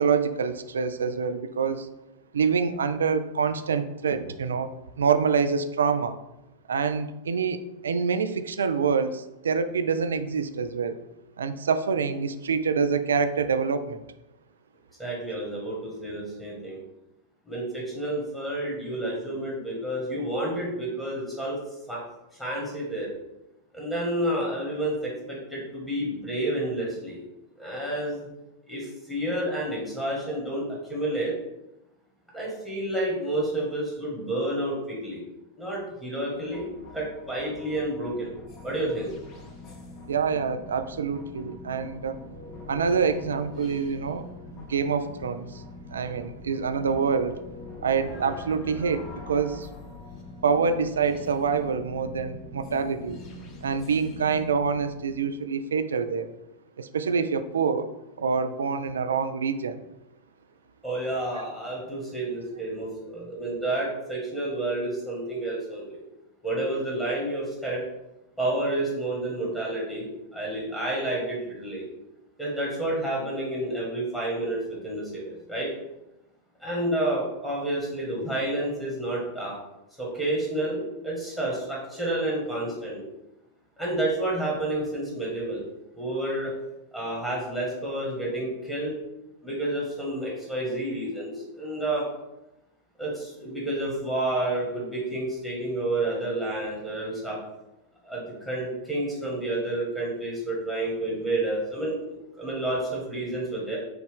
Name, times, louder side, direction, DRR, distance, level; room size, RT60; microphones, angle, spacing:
voice 1, 0.0-1.9 2.3-4.7 5.0-6.2 6.7-11.0 11.4-14.0 40.1-42.2 42.7-44.3 44.7-45.6 45.9-47.3 47.8-49.7 50.4-53.2 53.6-56.3 56.8-57.9 58.2-59.8, right 5 dB, 70° right, 10 dB, 0.3 m, -26 dB
voice 2, 15.0-16.8 17.5-21.6 21.9-22.0 22.4-23.1 23.7-27.2 27.6-28.3 28.7-30.6 30.9-31.3 32.3-35.2 35.6-38.3 38.6-39.1 60.8-66.0 66.4-67.8 68.4-71.9 72.4-75.7 76.6-79.5 80.0-83.0 83.8-85.6 85.9-86.5 86.9-88.9 89.4-92.1 93.0-97.4 98.0-103.8, right 1 dB, 10° left, -4 dB, 1.5 m, -30 dB
sound 1, 36.3-55.2, left 2 dB, 35° left, 0.7 m, -44 dB
6.0 x 2.4 x 3.5 m, 0.94 s
figure-of-eight pair, 90°, 0 cm